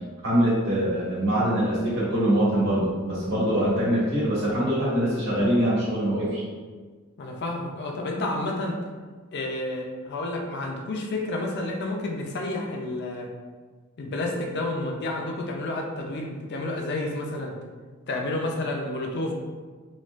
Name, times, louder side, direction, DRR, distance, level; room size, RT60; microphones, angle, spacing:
voice 1, 0.2-6.4, right 1 dB, 60° right, -8 dB, 1.4 m, -23 dB
voice 2, 7.2-8.8 9.3-13.3 14.0-17.5 18.1-19.3, left 2 dB, 55° left, 1 dB, 0.5 m, -30 dB
4.2 x 2.3 x 2.4 m, 1.5 s
head